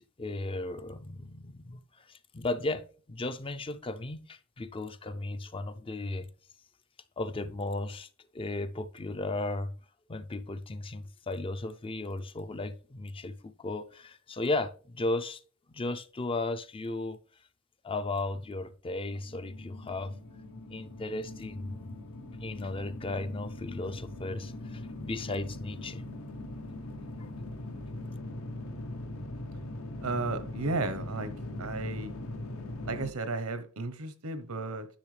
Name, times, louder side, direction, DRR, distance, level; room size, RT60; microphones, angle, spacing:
voice 1, 0.0-6.3 7.2-9.7 10.1-15.4 15.7-17.2 17.8-20.2 20.7-22.0 22.4-26.0 27.2-27.3, left 2 dB, 25° left, 0.4 m, -35 dB
sound 1, 19.1-33.1, left 1 dB, 70° left, 0.8 m, -41 dB
voice 2, 30.0-31.3 31.6-32.2 32.8-34.9, right 3 dB, 85° right, 1.0 m, -33 dB
10.5 x 6.6 x 3.3 m
head